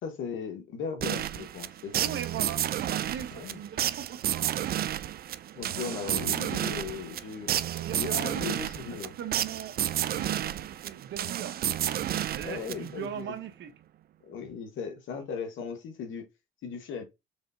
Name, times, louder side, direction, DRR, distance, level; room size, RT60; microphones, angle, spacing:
voice 1, 0.0-2.1 3.3-3.6 5.6-7.5 7.9-9.2 12.4-13.3 14.3-16.2 16.6-17.0, left 6 dB, 80° left, 1.3 m, -37 dB
sound 1, 1.0-13.1, right 11 dB, 50° right, 0.4 m, -31 dB
voice 2, 2.0-4.7 7.7-8.6 9.0-11.6 12.3-13.7, right 9 dB, 70° right, 0.9 m, -40 dB
4.9 x 3.3 x 2.6 m
cardioid pair, 90°, 20 cm